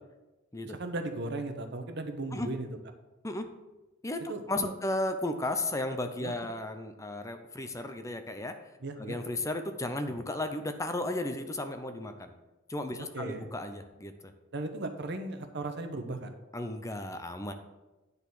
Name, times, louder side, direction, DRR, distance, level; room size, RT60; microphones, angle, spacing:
voice 1, 0.6-2.7 4.3-4.7 6.2-6.3 8.8-9.2 13.0-13.4 14.5-16.3, right 2 dB, 60° right, 7 dB, 1.0 m, -36 dB
voice 2, 4.0-8.5 9.0-12.3 12.7-14.3 16.5-17.5, left 1 dB, 15° left, 7 dB, 0.6 m, -34 dB
10.0 x 4.1 x 6.9 m, 1.1 s
head